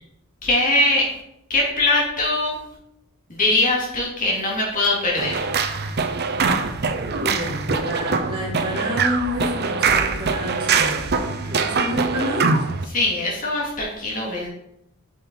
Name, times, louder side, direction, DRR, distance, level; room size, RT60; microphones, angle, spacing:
voice 1, 0.4-1.1 1.5-2.6 3.3-5.4 11.4-11.7 12.9-14.5, left 2 dB, 40° left, -3 dB, 2.5 m, -22 dB
sound 1, 5.2-12.8, right 4 dB, 50° right, 0.8 m, -23 dB
voice 2, 7.2-11.1 11.5-12.5, left 1 dB, 25° right, -6 dB, 3.5 m, -28 dB
8.6 x 5.8 x 4.5 m, 0.77 s
head